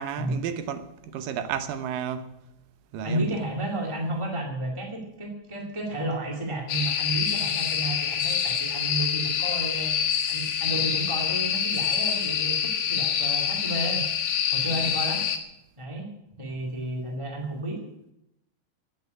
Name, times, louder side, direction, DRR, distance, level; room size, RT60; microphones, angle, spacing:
voice 1, 0.0-2.3 2.9-3.4 14.8-14.9, right 8 dB, 70° right, 2.5 m, -32 dB
voice 2, 3.0-9.9 10.3-14.0 14.5-15.2 15.8-16.1 16.4-17.8, right 1 dB, 10° right, 1.4 m, -32 dB
sound 1, 6.7-15.4, left 8 dB, 85° left, 3.5 m, -26 dB
15.5 x 8.1 x 9.6 m
omnidirectional pair, 4.4 m